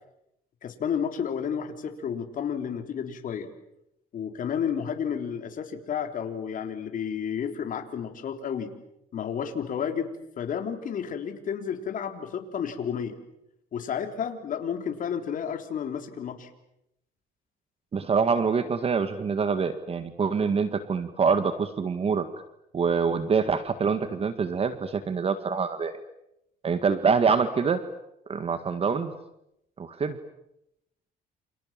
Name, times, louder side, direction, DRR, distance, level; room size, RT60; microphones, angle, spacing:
voice 1, 0.6-3.5 4.1-8.7 9.1-13.2 13.7-16.5, left 7 dB, 50° left, 6 dB, 3.7 m, -31 dB
voice 2, 17.9-22.3 22.7-25.9 26.6-27.8 28.3-29.1 29.8-30.2, right 5 dB, 35° right, 10 dB, 1.8 m, -25 dB
29.0 x 27.5 x 7.5 m, 0.83 s
cardioid pair, 110°, 17 cm